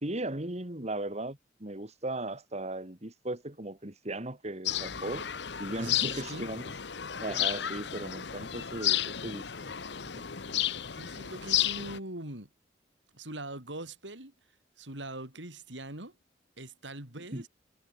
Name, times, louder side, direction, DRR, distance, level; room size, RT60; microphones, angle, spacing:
voice 1, 0.0-5.3 5.6-6.7 7.2-9.7 10.1-10.3 17.3-17.4, right 1 dB, 40° right, 2.8 m, -37 dB
sound 1, 4.7-12.0, left 11 dB, 65° left, 1.1 m, -32 dB
voice 2, 5.7-6.5 10.9-12.5 13.1-14.3 14.8-16.2 16.6-17.5, right 2 dB, 85° right, 6.1 m, -42 dB
head